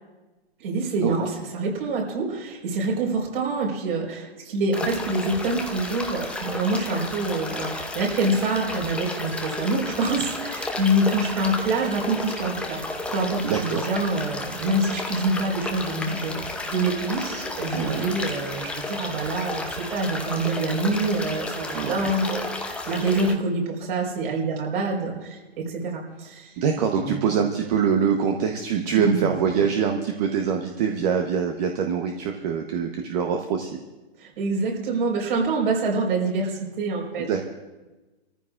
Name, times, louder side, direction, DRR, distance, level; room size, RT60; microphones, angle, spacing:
voice 1, 0.6-12.8 13.1-26.6 27.0-27.2 29.0-29.3 34.2-37.4, right 2 dB, 55° right, -1 dB, 4.7 m, -26 dB
sound 1, 4.7-23.3, left 2 dB, 5° left, 0.7 m, -32 dB
voice 2, 13.4-13.9 17.7-18.1 21.7-22.1 26.6-33.7 37.2-37.4, right 7 dB, 40° right, 4 dB, 1.0 m, -24 dB
28.5 x 14.5 x 2.5 m, 1.2 s
hypercardioid pair, 130°, 32 cm